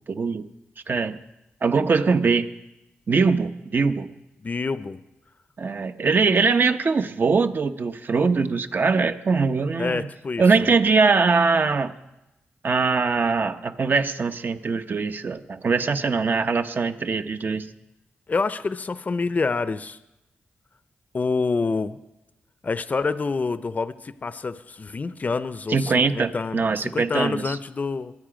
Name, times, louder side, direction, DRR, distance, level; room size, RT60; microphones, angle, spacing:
voice 1, 0.1-0.5 0.9-1.2 1.6-2.5 3.1-4.1 5.6-10.1 10.4-11.9 12.6-17.7 25.7-27.6, right 4 dB, 50° right, 10 dB, 0.8 m, -22 dB
voice 2, 4.4-5.0 9.8-10.4 18.3-20.0 21.1-22.0 22.6-28.1, left 4 dB, 40° left, 13 dB, 0.6 m, -27 dB
23.5 x 8.5 x 5.0 m, 0.96 s
cardioid pair, 65°, 4 cm